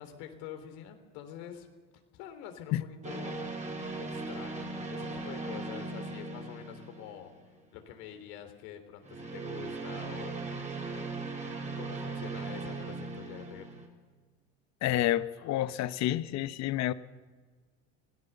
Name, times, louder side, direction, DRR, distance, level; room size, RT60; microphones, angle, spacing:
voice 1, 0.0-1.7 2.1-7.3 7.7-11.0 11.8-13.9, left 9 dB, 80° left, 6 dB, 3.4 m, -46 dB
sound 1, 3.0-7.5 9.0-13.9, right 3 dB, 20° right, 3.9 m, -38 dB
voice 2, 14.8-16.9, left 14 dB, 55° left, 14 dB, 0.9 m, -29 dB
26.0 x 17.0 x 6.8 m, 1.4 s
supercardioid pair, 115°, 32 cm